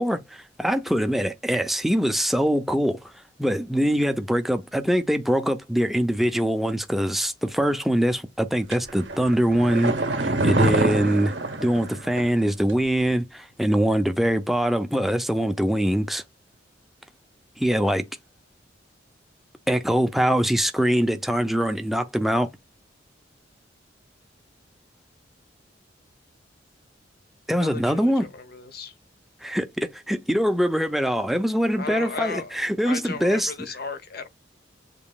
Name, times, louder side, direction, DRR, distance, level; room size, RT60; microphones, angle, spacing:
voice 1, 0.0-3.0 3.4-11.3 11.6-16.2 17.6-18.0 19.7-22.5 27.5-28.3 29.4-33.5, equal, ahead, 0.5 m, -23 dB
sound 1, 8.7-12.4 12.7-12.8, right 2 dB, 65° right, 0.9 m, -26 dB
voice 2, 27.6-28.9 31.8-32.5 32.8-34.3, left 4 dB, 55° left, 0.8 m, -35 dB
7.1 x 3.0 x 2.2 m
head